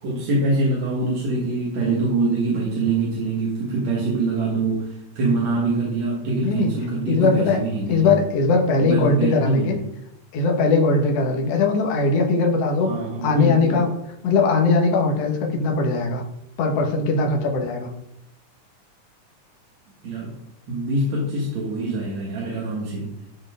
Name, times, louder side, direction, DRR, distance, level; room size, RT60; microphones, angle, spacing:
voice 1, 0.0-8.1 8.8-9.8 12.8-13.9 20.0-20.3 20.7-23.1, right 2 dB, 65° right, -3 dB, 2.6 m, -24 dB
voice 2, 7.1-7.6 7.9-9.8 10.3-12.9 13.2-13.9 14.2-16.2 16.6-17.9, left 3 dB, 60° left, 2 dB, 2.1 m, -20 dB
12.0 x 4.6 x 4.9 m, 0.79 s
omnidirectional pair, 3.6 m